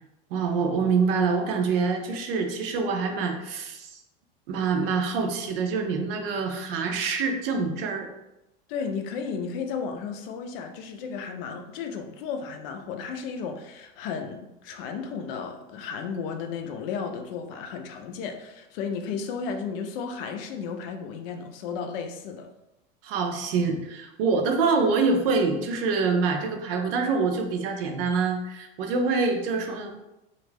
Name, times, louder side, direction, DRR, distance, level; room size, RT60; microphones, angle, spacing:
voice 1, 0.3-3.9 4.5-8.1 23.0-29.9, right 4 dB, 70° right, 4 dB, 0.6 m, -25 dB
voice 2, 8.7-22.5, left 6 dB, 70° left, 5 dB, 0.5 m, -34 dB
2.4 x 2.1 x 3.3 m, 0.93 s
supercardioid pair, 125°, 30 cm